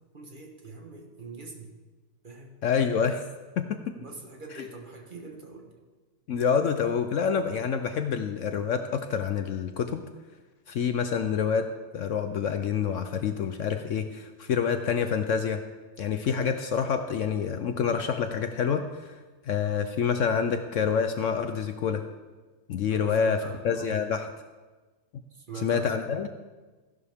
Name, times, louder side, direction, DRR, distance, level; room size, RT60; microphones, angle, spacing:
voice 1, 0.1-1.7 2.2-2.6 4.0-5.8 22.9-24.0 25.3-26.3, right 3 dB, 35° right, 3 dB, 1.2 m, -43 dB
voice 2, 2.6-3.2 3.6-3.7 4.5-4.6 6.3-10.0 10.7-11.7 11.9-15.6 16.0-19.1 19.5-22.0 22.7-24.3 25.6-26.3, left 7 dB, 65° left, 8 dB, 0.8 m, -27 dB
14.5 x 11.0 x 3.5 m, 1.3 s
omnidirectional pair, 1.7 m